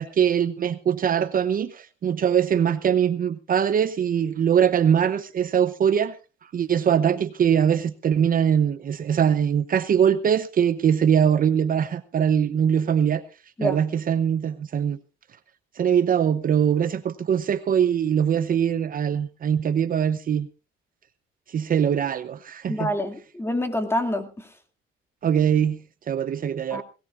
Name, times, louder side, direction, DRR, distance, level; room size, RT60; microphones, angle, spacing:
voice 1, 0.0-6.1 6.5-13.2 13.6-15.0 15.8-20.5 21.5-22.9 25.2-25.8 26.1-26.8, right 8 dB, 45° right, 12 dB, 0.8 m, -22 dB
voice 2, 22.7-24.5 26.7-26.8, left 1 dB, 10° left, 7 dB, 2.3 m, -27 dB
21.0 x 17.5 x 2.5 m, 0.33 s
cardioid pair, 100°, 20 cm